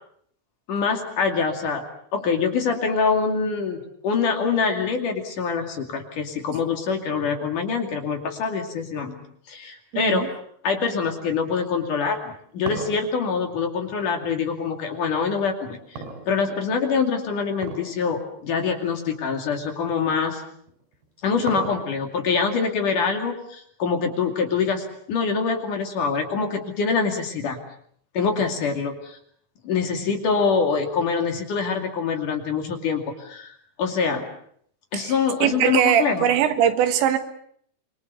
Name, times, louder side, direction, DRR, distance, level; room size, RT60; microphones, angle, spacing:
voice 1, 0.7-1.8 2.1-9.2 9.5-10.4 10.6-20.4 21.2-27.6 28.1-29.2 29.6-34.3 34.9-36.3, left 5 dB, 50° left, 4 dB, 3.7 m, -25 dB
voice 2, 9.9-10.3 34.9-35.1 35.4-37.2, right 9 dB, 85° right, 9 dB, 3.8 m, -21 dB
sound 1, 12.1-14.6 16.0-16.8 17.6-18.0 18.3-18.4 19.2-19.3 20.7-22.2, right 3 dB, 70° right, 6.3 m, -36 dB
26.5 x 24.5 x 6.9 m, 0.64 s
omnidirectional pair, 5.1 m